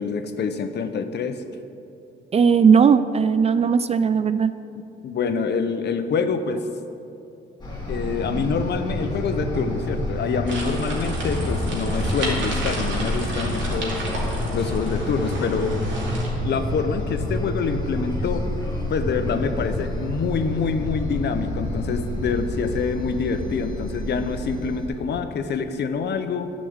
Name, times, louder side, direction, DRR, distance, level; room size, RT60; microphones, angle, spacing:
voice 1, 0.0-1.4 5.0-6.6 7.9-14.0 14.5-15.7 16.4-18.5 18.9-26.5, left 5 dB, 60° left, 8 dB, 0.8 m, -26 dB
voice 2, 2.3-4.5, right 6 dB, 30° right, 13 dB, 0.4 m, -17 dB
sound 1, 7.6-24.9, left 1 dB, 20° left, 2.2 m, -28 dB
sound 2, 10.5-16.3, right 1 dB, 70° right, 2.5 m, -32 dB
10.0 x 5.2 x 7.9 m, 2.7 s
cardioid pair, 90°, 20 cm